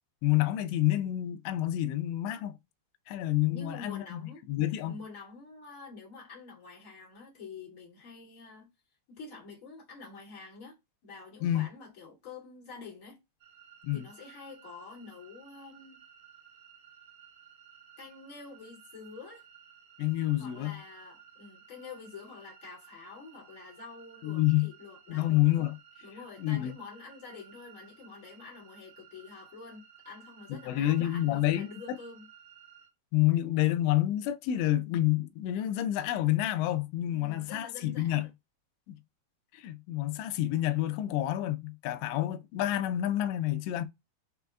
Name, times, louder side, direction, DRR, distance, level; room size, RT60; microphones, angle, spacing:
voice 1, 0.2-2.5 3.1-4.2 4.5-5.0 11.4-11.7 13.8-14.1 20.0-20.7 24.2-24.7 25.1-25.8 26.4-26.8 30.5-32.0 33.1-38.3 39.5-43.9, left 14 dB, 85° left, 2.8 m, -28 dB
voice 2, 3.5-4.4 4.9-8.7 9.1-10.8 11.0-13.2 13.9-16.0 18.0-19.4 20.4-25.3 26.0-32.3 37.1-38.2 41.9-42.2, left 4 dB, 45° left, 1.0 m, -47 dB
sound 1, 13.4-32.9, right 9 dB, 75° right, 1.6 m, -56 dB
6.8 x 2.3 x 3.5 m
omnidirectional pair, 5.3 m